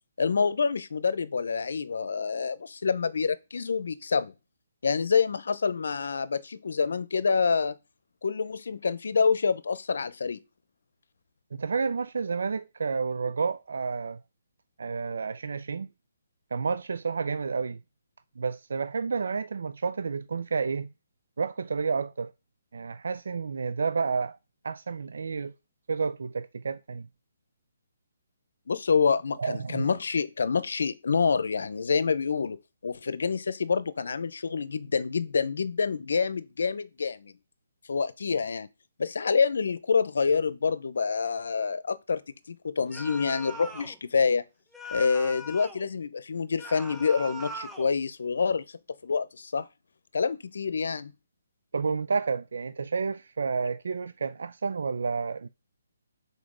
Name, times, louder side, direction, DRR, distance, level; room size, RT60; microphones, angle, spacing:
voice 1, 0.2-4.3 4.8-7.8 8.2-10.4 28.7-37.3 37.9-38.7 39.0-42.2 42.5-44.4 44.9-48.7 49.0-49.7 50.1-51.1, left 5 dB, 70° left, 0.7 m, -27 dB
voice 2, 11.5-14.2 14.8-15.9 16.5-17.8 18.4-20.9 21.4-22.3 22.7-24.4 24.6-25.5 25.9-27.1 29.4-29.9 51.7-55.5, right 5 dB, 70° right, 0.4 m, -30 dB
sound 1, 42.9-44.0 44.7-45.9 46.6-47.9, equal, 5° right, 0.9 m, -40 dB
5.2 x 4.5 x 6.1 m
hypercardioid pair, 155°, 0 cm